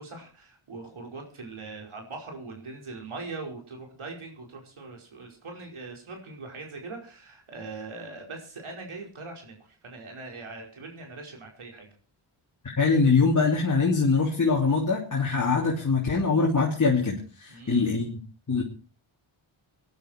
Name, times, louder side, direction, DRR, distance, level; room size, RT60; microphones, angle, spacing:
voice 1, 0.0-11.9 17.5-17.9, right 3 dB, 75° right, 2 dB, 5.2 m, -41 dB
voice 2, 12.6-18.1 18.5-18.6, left 4 dB, 40° left, -1 dB, 3.1 m, -23 dB
20.0 x 11.0 x 4.5 m, 0.37 s
wide cardioid pair, 95°, 49 cm